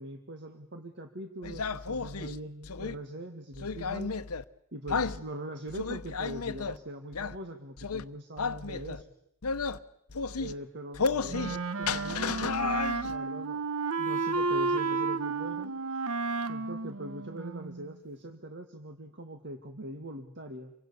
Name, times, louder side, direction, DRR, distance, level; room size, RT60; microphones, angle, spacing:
voice 1, 0.0-4.1 4.7-9.1 10.2-13.6 14.0-16.0 16.5-20.7, right 1 dB, 55° right, 6 dB, 1.8 m, -42 dB
sound 1, 1.4-3.0 3.5-4.4 4.9-5.2 5.7-6.8 7.1-7.4 7.8-8.0 8.4-9.0 9.4-9.8 10.1-10.5 10.9-11.6 11.8-13.2, left 5 dB, 85° left, 0.9 m, -33 dB
Wind instrument woodwind instrument, 11.3-17.9, right 3 dB, 75° right, 1.1 m, -32 dB
28.0 x 24.0 x 6.9 m, 0.76 s
head